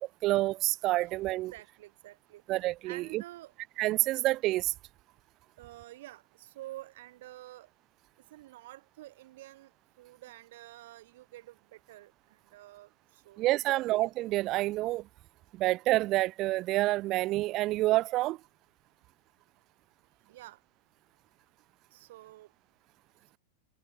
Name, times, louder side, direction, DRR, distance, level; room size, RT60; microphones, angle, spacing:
voice 1, 0.2-1.5 2.5-3.2 3.8-4.7 13.4-15.1 15.5-18.4, right 17 dB, 30° right, 0.5 m, -28 dB
voice 2, 1.3-2.4 2.8-3.5 5.6-7.7 8.3-13.9 20.3-20.6 21.9-22.5, right 16 dB, 55° right, 3.2 m, -49 dB
supercardioid pair, 175°, 0 cm